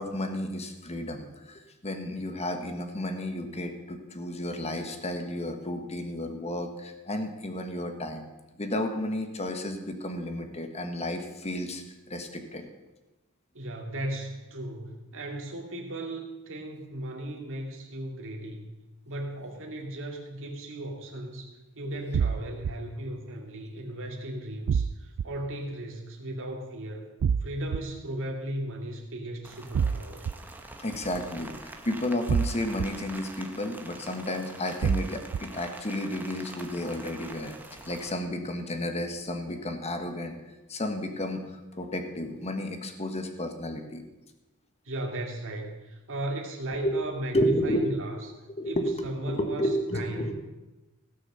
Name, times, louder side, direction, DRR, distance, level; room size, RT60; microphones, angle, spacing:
voice 1, 0.0-8.2 8.6-12.6 18.2-18.3 21.8-22.0 30.8-31.5 31.8-37.5 37.8-40.4 40.7-44.0 46.8-47.0 47.3-47.9 48.5-50.3, left 1 dB, 30° left, 6 dB, 1.4 m, -32 dB
voice 2, 13.5-18.7 19.1-27.1 27.4-30.3 44.8-48.2 48.6-49.7 49.9-50.3, right 1 dB, 60° right, 1 dB, 2.3 m, -36 dB
sound 1, 22.1-22.7 24.7-25.3 27.2-27.8 29.7-30.3 32.3-32.9 34.8-35.4, right 7 dB, 85° right, 0.4 m, -25 dB
Rain, 29.4-38.1, right 2 dB, 10° right, 1.0 m, -45 dB
16.5 x 6.3 x 6.8 m, 1.1 s
head